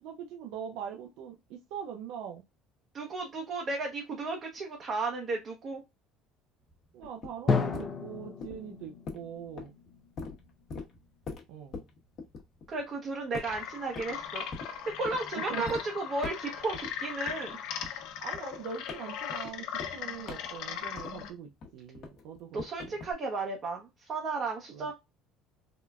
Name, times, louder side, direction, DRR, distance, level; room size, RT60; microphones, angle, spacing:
voice 1, 0.0-2.4 6.9-9.7 11.5-11.8 15.3-15.6 18.2-23.0 24.7-24.9, right 8 dB, 75° right, 0.6 m, -42 dB
voice 2, 2.9-5.8 12.7-14.4 15.0-17.6 22.5-24.9, right 3 dB, 40° right, 0.8 m, -34 dB
sound 1, 6.6-13.0 13.3-14.2 14.5-15.2 15.6-15.8 16.2-16.9 17.3-21.3 21.6-23.1, left 4 dB, 45° left, 0.9 m, -43 dB
Drum, 7.5-11.2, left 4 dB, 30° left, 0.6 m, -33 dB
sound 2, 13.4-21.3, left 8 dB, 70° left, 0.6 m, -39 dB
3.6 x 2.3 x 2.3 m
cardioid pair, 125°, 0 cm